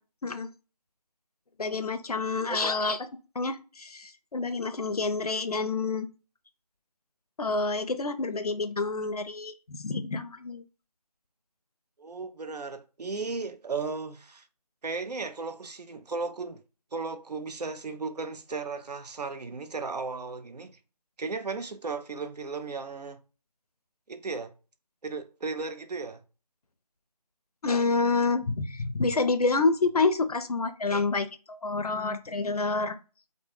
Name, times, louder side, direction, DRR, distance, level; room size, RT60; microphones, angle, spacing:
voice 1, 1.6-3.1 3.4-6.1 7.4-10.6 27.6-33.0, left 3 dB, 70° left, 0.4 m, -28 dB
voice 2, 2.5-3.0 12.0-14.5 14.8-16.6 16.9-20.8 21.2-23.2 24.1-24.5 25.0-26.2, right 4 dB, 85° right, 0.5 m, -35 dB
2.2 x 2.0 x 3.1 m
figure-of-eight pair, 175°, 20 cm